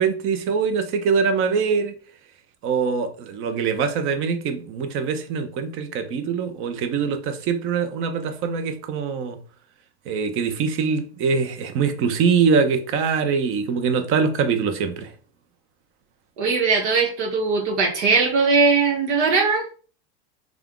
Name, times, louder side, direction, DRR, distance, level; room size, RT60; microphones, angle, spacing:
voice 1, 0.0-1.9 2.6-9.4 10.1-15.1, right 5 dB, 40° right, 0.6 m, -23 dB
voice 2, 16.4-19.6, right 4 dB, 85° right, 1.2 m, -20 dB
3.4 x 2.4 x 3.6 m
supercardioid pair, 125°, 34 cm